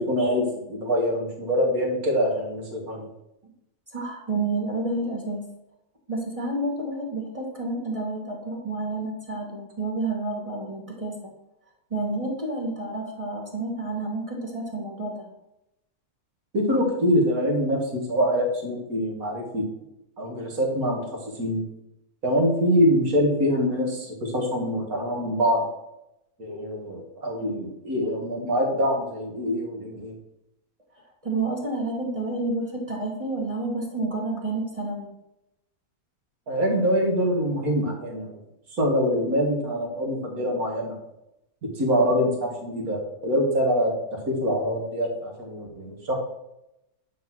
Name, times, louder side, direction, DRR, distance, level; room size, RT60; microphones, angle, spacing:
voice 1, 0.0-3.1 16.5-17.8 18.1-19.6 20.2-21.0 21.4-21.6 22.2-25.6 26.4-30.1 36.5-38.4 38.7-41.0 41.8-46.2, equal, 65° right, 0 dB, 2.4 m, -24 dB
voice 2, 3.9-5.5 6.1-11.3 11.9-15.3 31.2-35.1, right 2 dB, 25° right, -2 dB, 1.4 m, -29 dB
10.5 x 4.0 x 6.1 m, 0.88 s
omnidirectional pair, 1.6 m